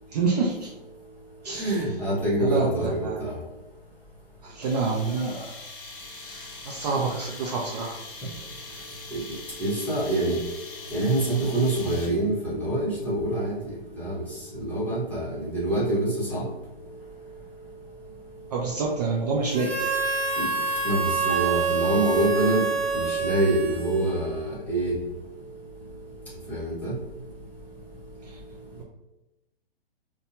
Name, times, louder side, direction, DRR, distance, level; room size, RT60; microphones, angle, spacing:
voice 1, 0.1-0.7 1.4-1.8 2.4-3.2 4.4-5.5 6.1-8.0 18.5-19.7 28.2-28.4 28.7-28.8, right 4 dB, 45° right, -2 dB, 0.4 m, -28 dB
voice 2, 1.6-3.3 9.1-9.2 9.6-10.4 10.9-13.5 14.0-14.2 14.6-16.5 20.4-20.5 20.8-22.6 22.9-24.9 26.5-26.9, right 1 dB, 5° left, -10 dB, 1.0 m, -25 dB
sound 1, 4.6-12.3, left 3 dB, 60° left, 0.7 m, -42 dB
Harmonica, 19.5-24.4, right 5 dB, 75° right, 0.7 m, -27 dB
2.6 x 2.2 x 2.6 m, 1.0 s
hypercardioid pair, 135°, 30 cm